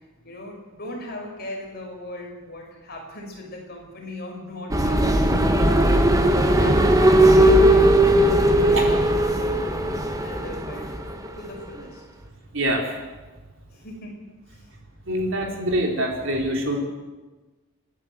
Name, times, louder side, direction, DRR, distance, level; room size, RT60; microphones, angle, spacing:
voice 1, 0.2-11.0 11.3-12.0 13.7-14.2 14.5-14.6, left 1 dB, 45° left, 0 dB, 5.5 m, -39 dB
sound 1, 4.7-11.3, right 1 dB, 15° right, 1.4 m, -18 dB
voice 2, 12.5-13.0 15.1-16.8, right 1 dB, 60° right, 1 dB, 4.2 m, -25 dB
29.5 x 11.0 x 7.9 m, 1.2 s
head